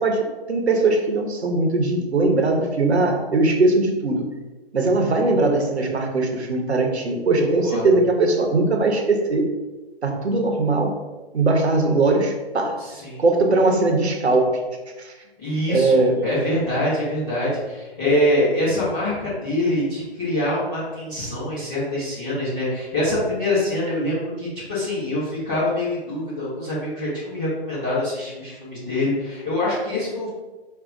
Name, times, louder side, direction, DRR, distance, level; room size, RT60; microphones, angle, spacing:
voice 1, 0.0-4.2 4.7-9.5 10.0-10.9 11.3-12.8 13.2-14.6 15.0-15.1 15.7-16.2, right 2 dB, 80° right, 3 dB, 0.9 m, -20 dB
voice 2, 7.4-7.8 12.8-13.2 15.4-30.3, left 1 dB, 5° left, -14 dB, 0.3 m, -24 dB
5.3 x 2.2 x 3.8 m, 1.2 s
figure-of-eight pair, 135°, 32 cm